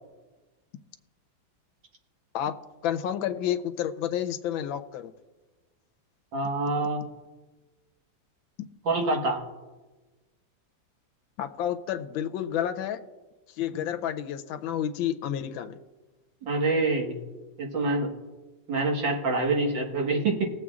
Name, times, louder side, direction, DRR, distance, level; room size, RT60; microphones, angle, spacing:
voice 1, 2.8-5.1 8.6-8.7 11.4-13.0 13.5-15.7, left 10 dB, 85° left, 7 dB, 1.4 m, -30 dB
voice 2, 6.3-7.0 8.9-9.4 16.4-17.2 17.6-18.1 18.7-20.5, right 2 dB, 75° right, -1 dB, 2.3 m, -26 dB
20.5 x 7.7 x 2.4 m, 1.2 s
omnidirectional pair, 2.1 m